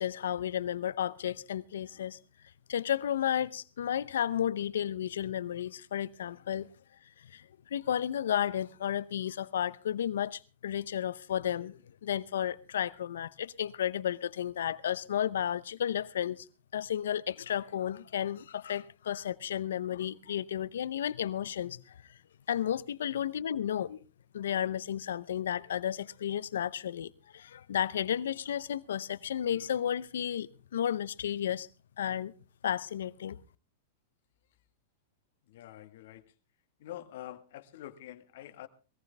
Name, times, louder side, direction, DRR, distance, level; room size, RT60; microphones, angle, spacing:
voice 1, 0.0-2.2 2.7-6.7 7.3-7.4 7.7-16.5 16.7-21.8 22.5-24.0 24.3-31.7 32.0-32.3 32.6-33.4, left 10 dB, 85° left, 0.7 m, -33 dB
voice 2, 35.5-36.3 36.8-38.7, left 13 dB, 70° left, 1.6 m, -46 dB
19.5 x 15.0 x 3.4 m
hypercardioid pair, 130°, 0 cm